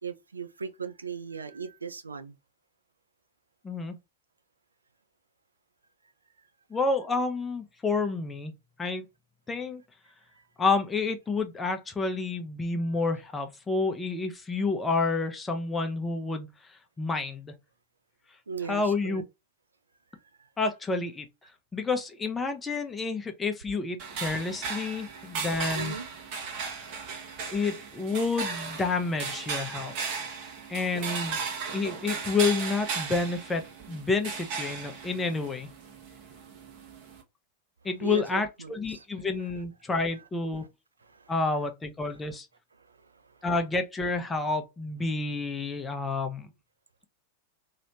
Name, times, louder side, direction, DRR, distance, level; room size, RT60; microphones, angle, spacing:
voice 1, 0.0-2.4 10.4-10.5 18.5-19.2 20.4-20.5 25.7-26.7 38.0-39.0 41.1-41.3 42.8-43.4, right 5 dB, 75° right, 0.5 m, -39 dB
voice 2, 3.6-4.0 6.7-8.5 8.8-9.1 9.5-9.8 10.6-17.5 18.7-19.2 20.6-21.2 21.7-26.0 27.5-30.0 30.7-31.4 31.7-35.7 37.8-40.6 41.3-42.5 43.4-46.5, left 3 dB, 15° left, 0.8 m, -29 dB
sound 1, 24.0-37.2, right 5 dB, 45° right, 1.1 m, -36 dB
3.1 x 2.9 x 2.6 m
figure-of-eight pair, 90°, 0 cm